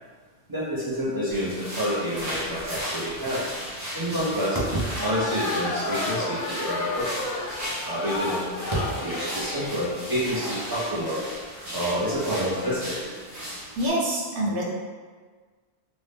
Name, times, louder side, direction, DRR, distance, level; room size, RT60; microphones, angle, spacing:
voice 1, 0.5-3.4 3.9-7.1 7.8-11.2 11.7-13.1, equal, 30° right, -8 dB, 0.5 m, -28 dB
sound 1, 1.3-13.9, equal, 50° right, 1.0 m, -36 dB
sound 2, 4.9-9.8, left 3 dB, 65° left, 0.7 m, -31 dB
voice 2, 13.8-14.6, right 1 dB, 80° right, -4 dB, 1.0 m, -25 dB
2.7 x 2.0 x 3.3 m, 1.5 s
omnidirectional pair, 1.2 m